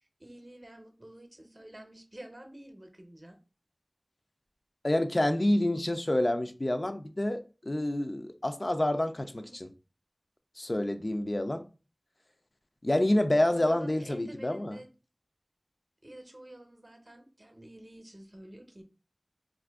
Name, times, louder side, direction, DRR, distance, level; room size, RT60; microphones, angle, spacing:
voice 1, 0.0-3.4 9.4-9.6 13.5-14.9 16.0-18.8, right 1 dB, 40° right, 0.6 m, -49 dB
voice 2, 4.8-9.7 10.6-11.7 12.8-14.8, left 1 dB, 45° left, 0.3 m, -28 dB
2.5 x 2.5 x 3.4 m
wide cardioid pair, 40°, 0 cm